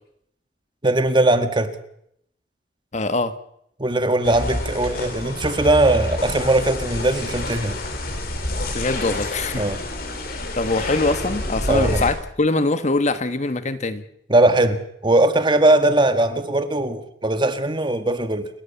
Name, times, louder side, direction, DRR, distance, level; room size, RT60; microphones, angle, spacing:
voice 1, 0.8-1.8 3.8-7.8 9.6-9.8 11.7-12.0 14.3-18.5, right 2 dB, 25° right, 1.7 m, -19 dB
voice 2, 2.9-3.3 8.7-9.6 10.6-14.0, left 2 dB, 40° left, 1.3 m, -23 dB
sound 1, 4.2-12.1, left 1 dB, 55° left, 3.9 m, -28 dB
29.0 x 11.5 x 8.5 m
head